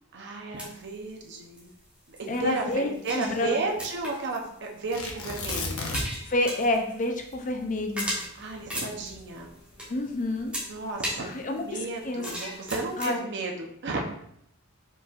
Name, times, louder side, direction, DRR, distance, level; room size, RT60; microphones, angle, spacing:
voice 1, 0.1-1.7 2.1-5.8 8.3-9.5 10.7-14.0, right 3 dB, 55° right, 1 dB, 0.7 m, -33 dB
sound 1, 0.6-13.2, equal, 5° right, 1.3 m, -39 dB
voice 2, 2.3-3.5 6.2-8.1 9.9-10.5 11.2-11.6 12.0-12.3 13.0-13.3, left 1 dB, 35° left, 3 dB, 0.5 m, -28 dB
Tearing, 4.9-6.3 6.6-6.7 7.2-9.6 10.3-10.8, left 3 dB, 75° left, 0.9 m, -34 dB
4.6 x 4.3 x 2.4 m, 0.72 s
head